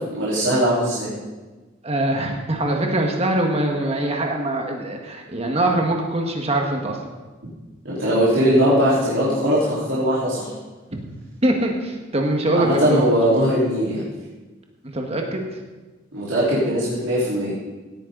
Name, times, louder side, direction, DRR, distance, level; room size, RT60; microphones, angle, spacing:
voice 1, 0.1-1.1 7.8-10.5 12.5-14.0 16.1-17.5, equal, 90° right, -9 dB, 4.1 m, -20 dB
voice 2, 1.8-7.0 10.9-11.0 11.4-13.1 14.8-15.4, right 1 dB, 35° right, 2 dB, 1.6 m, -23 dB
17.5 x 9.0 x 4.0 m, 1.2 s
head